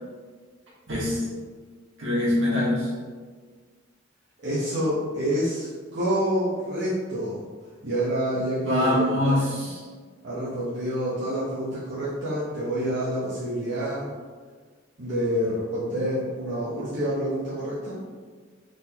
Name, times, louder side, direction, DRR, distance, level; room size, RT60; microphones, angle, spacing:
voice 1, 0.9-1.3 2.0-2.9 8.6-9.8, left 1 dB, 80° right, -7 dB, 1.5 m, -24 dB
voice 2, 4.4-7.4 7.8-9.1 10.2-14.1 15.0-18.0, equal, 60° right, -10 dB, 0.9 m, -27 dB
3.9 x 3.7 x 2.8 m, 1.5 s
head